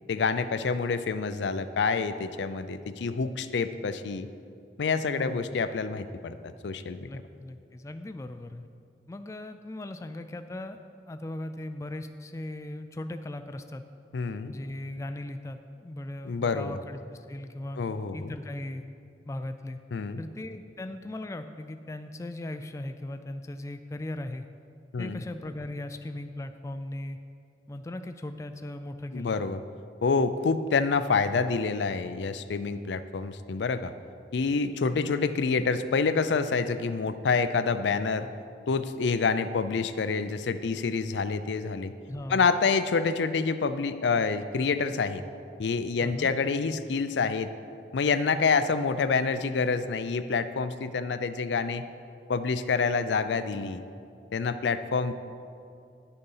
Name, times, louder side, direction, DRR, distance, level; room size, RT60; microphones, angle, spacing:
voice 1, 0.1-4.3 4.8-7.2 14.1-14.5 16.2-16.8 17.8-18.3 19.9-20.2 24.9-25.2 29.1-29.6 30.0-33.9 34.3-38.3 38.7-41.9 42.3-45.2 45.6-47.5 47.9-51.8 52.3-53.8 54.3-55.1, left 4 dB, 85° left, 11 dB, 0.5 m, -27 dB
voice 2, 5.1-5.5 7.1-8.7 9.1-10.8 11.1-13.8 14.5-17.8 18.1-18.9 19.3-19.8 20.2-24.5 25.0-27.2 27.7-29.4 42.1-42.5 46.0-46.3, left 1 dB, 15° left, 8 dB, 0.3 m, -38 dB
10.0 x 6.7 x 5.5 m, 2.5 s
head